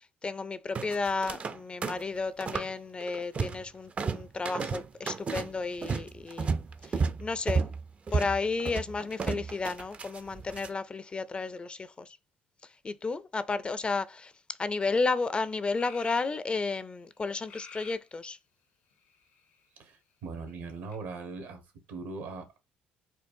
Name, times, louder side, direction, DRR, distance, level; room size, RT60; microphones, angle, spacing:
voice 1, 0.2-6.5 6.9-7.6 8.1-12.1 12.8-14.3 14.6-18.4, left 4 dB, 25° left, 0.4 m, -32 dB
sound 1, 0.7-1.6 1.8-2.7 3.0-3.7 4.0-10.7, right 5 dB, 35° right, 0.4 m, -32 dB
sound 2, 15.1-15.2 15.7-16.3 17.5-18.1 18.9-19.6 20.9-21.0, left 5 dB, 85° left, 1.0 m, -49 dB
voice 2, 19.8-21.6 21.9-22.6, right 4 dB, 75° right, 1.3 m, -40 dB
4.4 x 2.4 x 2.6 m
supercardioid pair, 70°, 4 cm